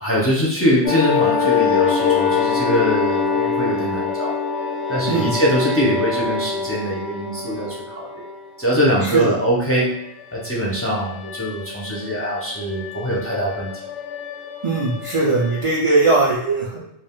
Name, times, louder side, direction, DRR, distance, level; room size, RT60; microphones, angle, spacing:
voice 1, 0.0-4.3 4.9-8.2 8.6-9.9 10.3-13.7, equal, 20° left, -5 dB, 0.4 m, -22 dB
sound 1, 0.8-8.4 10.3-15.6, left 6 dB, 90° left, 0.9 m, -24 dB
voice 2, 14.6-16.8, right 3 dB, 60° right, -4 dB, 0.3 m, -19 dB
2.4 x 2.3 x 3.6 m, 0.84 s
omnidirectional pair, 1.2 m